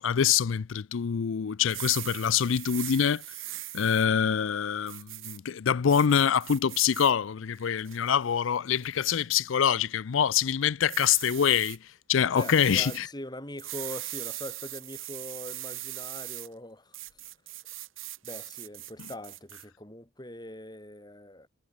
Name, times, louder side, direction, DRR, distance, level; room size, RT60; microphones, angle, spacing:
voice 1, 0.0-3.2 3.7-11.8 12.1-13.1, left 8 dB, 75° left, 0.5 m, -25 dB
sound 1, 1.6-4.1 4.9-5.4 5.9-7.1 7.6-8.2 8.8-9.1 10.9-11.8 12.4-13.0 13.6-16.5 16.9-19.6, right 16 dB, 90° right, 6.9 m, -40 dB
voice 2, 12.3-17.2 18.2-21.5, left 1 dB, 20° left, 7.4 m, -42 dB
head